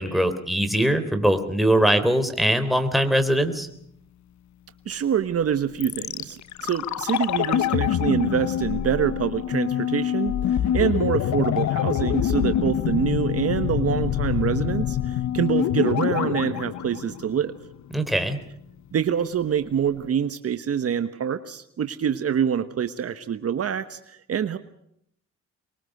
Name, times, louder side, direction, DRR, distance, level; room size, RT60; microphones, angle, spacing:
voice 1, 0.0-3.7 17.9-18.4, right 1 dB, ahead, 7 dB, 3.7 m, -21 dB
voice 2, 4.8-17.5 18.9-24.6, right 8 dB, 50° right, 10 dB, 1.3 m, -26 dB
sound 1, 5.8-17.8 18.1-18.2, left 11 dB, 65° left, 1.0 m, -25 dB
25.0 x 22.0 x 6.7 m, 0.71 s
cardioid pair, 90°, 30 cm